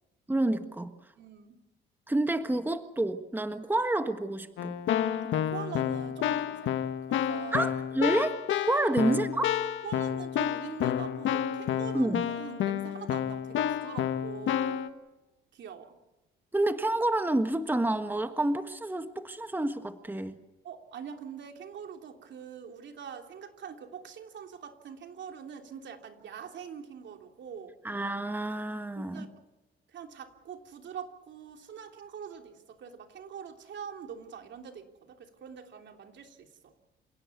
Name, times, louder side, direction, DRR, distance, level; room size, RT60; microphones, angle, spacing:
voice 1, 0.3-0.9 2.1-4.9 7.5-8.4 8.7-9.5 11.9-12.2 16.5-20.3 27.8-29.3, right 1 dB, 10° right, 8 dB, 1.5 m, -29 dB
voice 2, 1.2-1.6 5.1-7.7 8.7-9.1 9.8-14.8 15.5-16.0 20.6-27.7 29.0-29.3 29.9-36.7, right 7 dB, 65° right, 5 dB, 3.2 m, -44 dB
Keyboard (musical), 4.6-14.9, left 10 dB, 80° left, 1.7 m, -30 dB
28.5 x 17.0 x 8.4 m, 1.0 s
cardioid pair, 90°, 20 cm